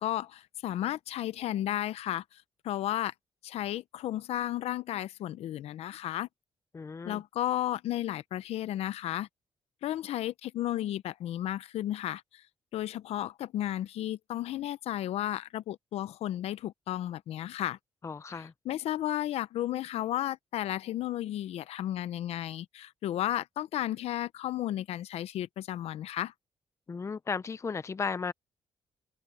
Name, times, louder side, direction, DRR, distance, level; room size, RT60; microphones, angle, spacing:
voice 1, 0.0-3.1 3.4-6.3 7.0-9.3 9.8-12.4 12.7-17.8 18.3-26.3, left 13 dB, 80° left, 0.7 m, -33 dB
voice 2, 6.7-7.2 18.0-18.5 26.9-28.3, left 5 dB, 25° left, 0.5 m, -35 dB
cardioid pair, 80°, 10 cm